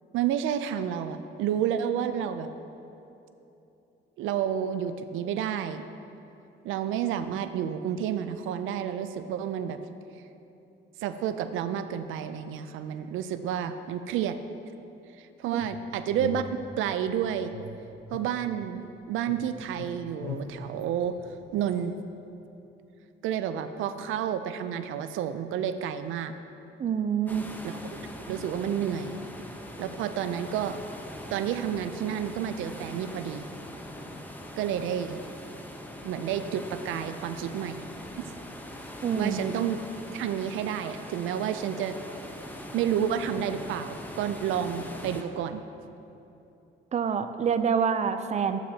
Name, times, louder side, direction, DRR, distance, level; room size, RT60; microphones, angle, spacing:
voice 1, 0.1-2.5 4.2-5.8 6.6-9.8 11.0-14.4 15.2-17.5 18.1-21.2 21.5-22.0 23.2-26.4 27.6-27.8 28.2-29.2 29.8-30.8 31.3-33.5 34.6-35.2 36.0-37.8 38.2-38.3 39.1-39.8 40.1-42.0 42.7-45.6, right 9 dB, 85° right, 10 dB, 0.4 m, -30 dB
sound 1, 15.6-17.1 17.5-19.0 19.3-21.8, left 4 dB, 85° left, 0.8 m, -41 dB
voice 2, 26.8-27.5 39.0-39.5 46.9-48.6, right 7 dB, 35° right, 9 dB, 0.5 m, -26 dB
sound 2, 27.3-45.2, left 1 dB, 10° left, 0.9 m, -42 dB
11.5 x 8.8 x 2.8 m, 2.9 s
cardioid pair, 90°, 20 cm